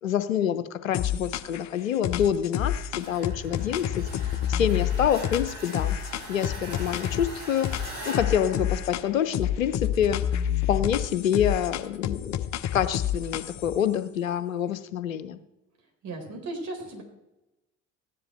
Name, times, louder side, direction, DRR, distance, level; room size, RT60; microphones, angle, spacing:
voice 1, 0.0-3.8 4.2-6.0 6.3-10.2 10.7-12.4 12.7-15.4, left 9 dB, 90° left, 12 dB, 0.8 m, -27 dB
sound 1, 0.9-1.7 2.0-7.3 7.6-9.1 9.3-13.8, left 10 dB, 45° left, 0.9 m, -29 dB
sound 2, 3.0-9.7, right 1 dB, 70° right, 3.8 m, -42 dB
voice 2, 16.0-17.0, right 2 dB, 45° right, 2 dB, 4.3 m, -36 dB
15.0 x 10.5 x 4.4 m, 0.96 s
hypercardioid pair, 60°, 39 cm